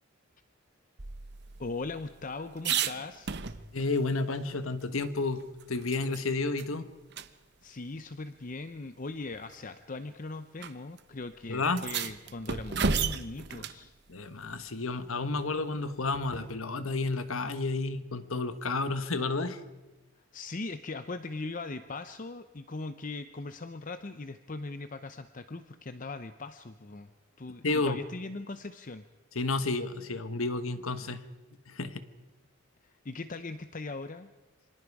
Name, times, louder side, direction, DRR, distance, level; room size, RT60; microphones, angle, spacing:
sound 1, 1.0-4.0 4.3-4.4 4.8-6.2 6.6-6.7 7.1-7.3 8.3-8.4 9.3-9.6 10.6-10.7 11.0-11.1 11.6-13.8 16.1-16.6, right 6 dB, 55° right, 1.0 m, -34 dB
voice 1, 1.6-3.4 7.6-13.9 20.2-27.1 27.4-29.0 32.8-34.3, left 3 dB, 40° left, 10 dB, 0.7 m, -40 dB
voice 2, 3.7-6.9 11.5-11.8 14.1-19.6 27.6-28.0 29.3-31.2 31.7-32.0, left 3 dB, 80° left, 11 dB, 1.4 m, -31 dB
28.0 x 25.5 x 4.8 m, 1.1 s
head